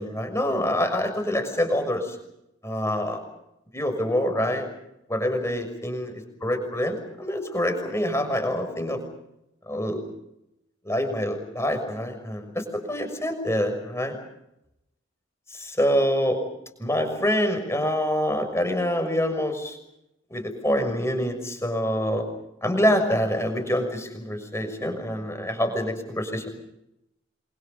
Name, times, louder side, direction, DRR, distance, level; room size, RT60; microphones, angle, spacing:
voice 1, 0.0-2.2 2.6-3.2 3.7-4.7 5.1-6.1 6.4-9.0 9.7-10.0 10.8-14.1 15.5-16.4 16.8-19.8 20.3-22.3 22.6-26.5, equal, 15° left, 7 dB, 6.2 m, -26 dB
28.0 x 26.0 x 5.5 m, 0.81 s
head